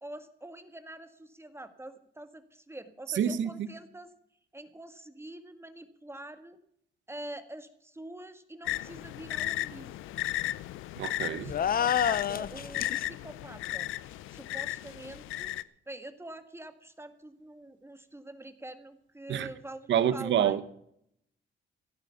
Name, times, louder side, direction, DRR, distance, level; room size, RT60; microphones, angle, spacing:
voice 1, 0.0-4.1 4.5-6.6 7.1-9.9 11.3-13.9 14.3-15.5 15.9-20.6, right 1 dB, 10° right, 1.6 m, -45 dB
voice 2, 3.1-3.5 11.0-11.5 19.3-19.5 19.9-20.6, right 9 dB, 70° right, 1.2 m, -27 dB
sound 1, 8.6-15.6, left 16 dB, 90° left, 0.6 m, -35 dB
sound 2, 11.5-13.0, left 8 dB, 45° left, 0.7 m, -28 dB
16.0 x 9.4 x 7.0 m
cardioid pair, 90°, 20 cm